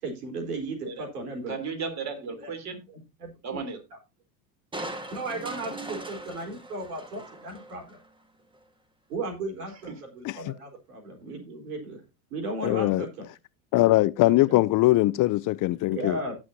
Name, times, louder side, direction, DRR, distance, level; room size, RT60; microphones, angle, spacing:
voice 1, 0.0-1.6 2.3-2.5 3.2-3.6 5.1-8.0 9.1-12.0 12.3-13.3 14.5-14.6 15.9-16.3, right 2 dB, 90° right, 4.4 m, -35 dB
voice 2, 1.5-2.8 3.4-3.8 9.9-10.0 11.3-11.4, right 5 dB, 35° right, 3.4 m, -35 dB
Crushing, 4.7-8.1 8.5-8.6, right 2 dB, 10° right, 1.4 m, -40 dB
voice 3, 12.6-13.1 13.7-16.2, left 17 dB, 45° left, 0.5 m, -22 dB
17.5 x 6.3 x 2.7 m
supercardioid pair, 100°, 45 cm